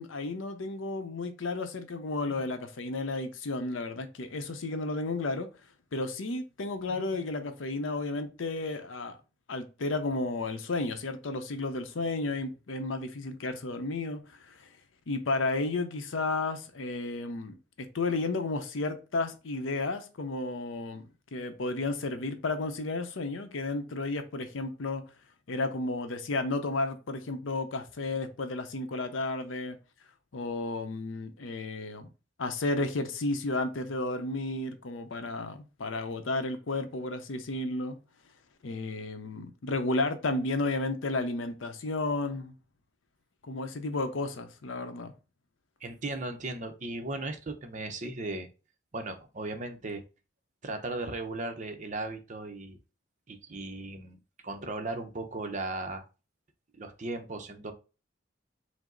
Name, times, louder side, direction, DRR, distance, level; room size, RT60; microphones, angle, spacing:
voice 1, 0.0-5.5 5.9-9.2 9.5-14.7 15.1-25.0 25.5-29.8 30.3-32.1 32.4-38.0 38.6-42.5 43.4-45.1, left 2 dB, 90° left, 0.6 m, -32 dB
voice 2, 45.8-48.5 48.9-50.0 50.6-52.8 53.3-54.2 54.4-56.1 56.8-57.7, right 2 dB, 40° right, 0.6 m, -36 dB
4.9 x 2.0 x 3.8 m
head